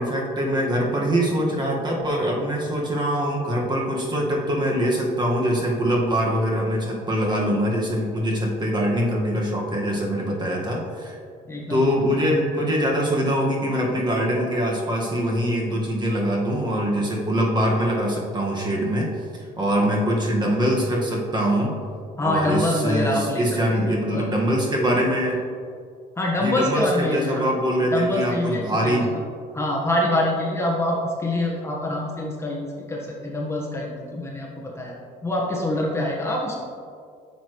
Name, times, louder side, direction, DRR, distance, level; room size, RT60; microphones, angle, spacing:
voice 1, 0.0-11.2 11.7-21.7 22.2-25.4 26.4-29.1, equal, 25° right, -2 dB, 1.7 m, -23 dB
voice 2, 11.5-11.9 22.2-23.8 24.1-24.2 26.2-27.4 27.9-29.1 29.5-35.0 35.2-36.6, left 1 dB, 15° left, -3 dB, 1.3 m, -25 dB
10.5 x 7.1 x 3.2 m, 2.2 s
cardioid pair, 110°, 17 cm